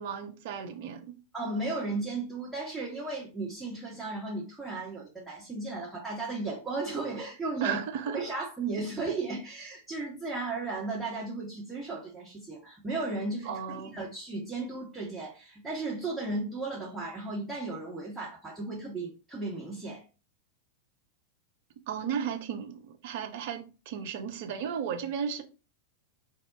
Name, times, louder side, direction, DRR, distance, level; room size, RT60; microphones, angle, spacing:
voice 1, 0.0-1.2 7.6-8.2 13.4-14.0 21.9-25.4, right 7 dB, 50° right, 0.5 m, -34 dB
voice 2, 1.3-7.8 8.1-20.0, right 3 dB, 10° right, 0.9 m, -35 dB
2.1 x 2.0 x 3.8 m
figure-of-eight pair, 90°, 0 cm